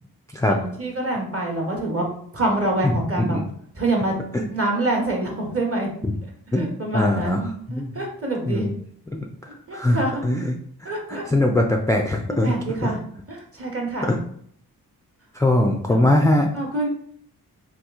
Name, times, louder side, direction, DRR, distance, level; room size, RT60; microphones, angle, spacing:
voice 1, 0.5-2.1 2.3-3.4 3.8-4.1 4.5-5.9 6.5-8.7 9.7-10.2 10.8-11.2 12.4-13.0 13.3-14.2 15.8-16.2 16.5-16.9, right 2 dB, 35° right, 0 dB, 1.1 m, -26 dB
voice 2, 2.8-3.5 4.3-4.5 6.5-6.7 6.9-7.4 7.7-7.9 8.5-8.7 9.1-9.2 9.7-10.6 11.1-12.5 12.8-12.9 14.1-14.2 15.4-16.5, left 1 dB, 10° left, 2 dB, 0.3 m, -21 dB
2.9 x 2.4 x 3.5 m, 0.65 s
cardioid pair, 50°, 39 cm